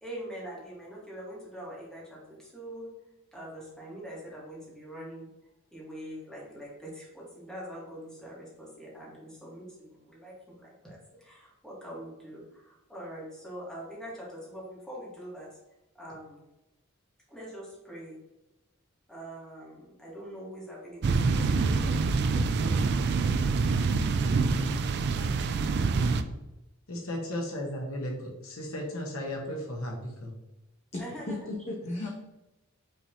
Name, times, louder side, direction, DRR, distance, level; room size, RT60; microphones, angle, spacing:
voice 1, 0.0-2.9 3.3-5.3 5.7-15.5 15.9-16.4 17.3-18.2 19.1-22.9 31.0-31.4, equal, 5° left, -6 dB, 1.5 m, -43 dB
sound 1, 21.0-26.2, right 4 dB, 50° right, 0.3 m, -26 dB
voice 2, 26.9-30.3 31.8-32.1, left 1 dB, 75° left, 0 dB, 1.1 m, -35 dB
voice 3, 30.9-32.1, left 2 dB, 30° left, -3 dB, 0.7 m, -37 dB
5.5 x 3.4 x 2.8 m, 0.97 s
head